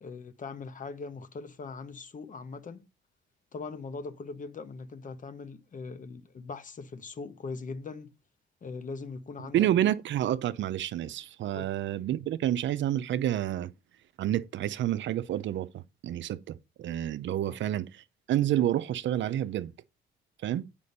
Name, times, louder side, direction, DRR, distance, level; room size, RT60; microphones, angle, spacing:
voice 1, 0.0-2.9 3.5-8.1 8.6-9.7 11.5-11.7 17.4-17.6, left 4 dB, 40° left, 1.1 m, -41 dB
voice 2, 9.5-13.7 14.2-19.7 20.4-20.6, right 12 dB, 70° right, 0.6 m, -29 dB
8.4 x 5.2 x 5.4 m
cardioid pair, 90°, 20 cm